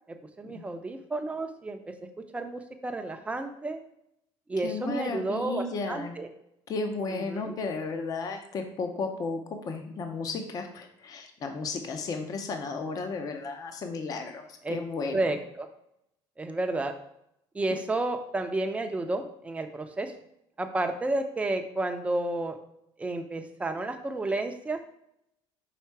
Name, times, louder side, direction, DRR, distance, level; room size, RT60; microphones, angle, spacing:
voice 1, 0.4-1.8 2.3-3.8 4.5-6.3 7.1-7.5 14.6-14.8 15.1-15.7 16.4-16.9 17.5-20.1 20.6-22.6 23.0-24.8, right 2 dB, 10° right, 6 dB, 0.6 m, -31 dB
voice 2, 4.6-6.1 6.7-15.2, left 4 dB, 35° left, 5 dB, 0.7 m, -34 dB
5.8 x 3.6 x 4.6 m, 0.78 s
cardioid pair, 140°, 10 cm